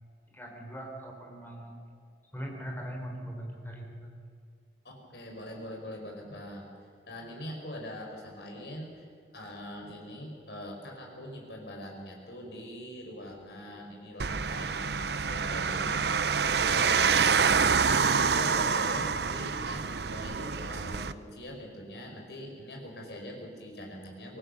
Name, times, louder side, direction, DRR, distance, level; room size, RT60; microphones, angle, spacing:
voice 1, 0.3-1.7 2.3-4.1, equal, 10° left, 1 dB, 4.1 m, -40 dB
voice 2, 4.8-6.7 7.1-9.1 9.3-24.4, left 1 dB, 65° left, 0 dB, 5.7 m, -42 dB
sound 1, 14.2-21.1, right 5 dB, 65° right, 0.7 m, -27 dB
24.5 x 19.0 x 6.9 m, 2.4 s
head